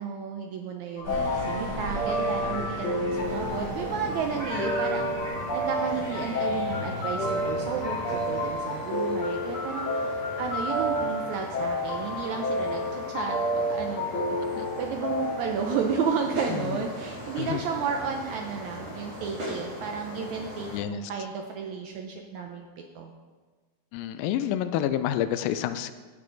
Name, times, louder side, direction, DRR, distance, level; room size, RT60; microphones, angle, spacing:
voice 1, 0.0-5.1 5.5-23.1, right 6 dB, 75° right, 3 dB, 1.7 m, -33 dB
sound 1, 1.0-15.4, left 1 dB, 50° left, 3.2 m, -30 dB
sound 2, 1.0-8.5, right 1 dB, 30° right, 4.2 m, -37 dB
sound 3, 3.1-20.8, equal, 45° right, 4.7 m, -40 dB
voice 2, 16.5-16.8 17.4-17.6 20.7-21.1 23.9-25.9, left 11 dB, 85° left, 11 dB, 2.3 m, -29 dB
10.5 x 9.1 x 3.9 m, 1.4 s
omnidirectional pair, 4.0 m